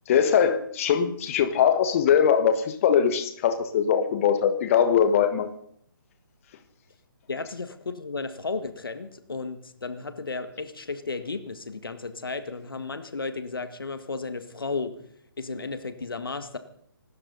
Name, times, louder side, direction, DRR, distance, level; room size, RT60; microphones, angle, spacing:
voice 1, 0.1-5.5, left 8 dB, 35° left, 9 dB, 1.4 m, -21 dB
voice 2, 7.3-14.9 15.4-16.6, left 4 dB, 75° left, 10 dB, 1.7 m, -34 dB
25.0 x 13.0 x 4.0 m, 0.64 s
figure-of-eight pair, 135°, 12 cm